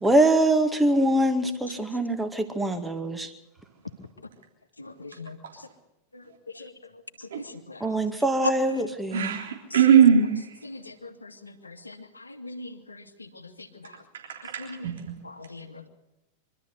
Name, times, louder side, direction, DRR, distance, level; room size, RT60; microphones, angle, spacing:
voice 1, 0.0-3.3 7.8-9.3, right 1 dB, 5° right, 6 dB, 2.1 m, -23 dB
voice 2, 5.0-5.4 6.6-6.7 7.7-7.8 10.7-10.8 11.2-11.9 12.4-12.7 14.7-14.8 15.2-15.9, left 2 dB, 80° left, 5 dB, 2.1 m, -41 dB
voice 3, 9.1-10.4 14.4-15.1, right 8 dB, 65° right, 1 dB, 3.5 m, -20 dB
24.5 x 13.0 x 8.2 m, 0.94 s
figure-of-eight pair, 90°, 0 cm